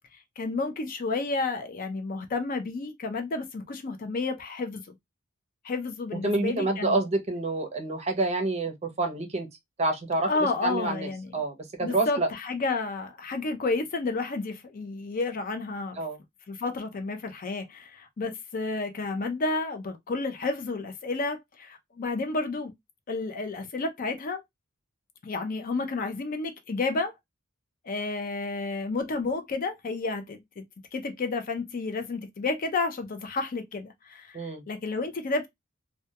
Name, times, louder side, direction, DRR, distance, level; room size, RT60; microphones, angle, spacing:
voice 1, 0.4-4.8 5.6-7.0 10.3-11.3 11.8-16.0 16.5-22.7 23.1-24.4 25.2-27.1 27.8-30.6 30.9-35.5, left 3 dB, 40° left, 0.4 m, -31 dB
voice 2, 6.1-9.5 9.8-10.3 10.6-12.3 16.0-16.2 34.3-34.6, right 2 dB, 30° right, 0.6 m, -28 dB
2.2 x 2.1 x 2.7 m
head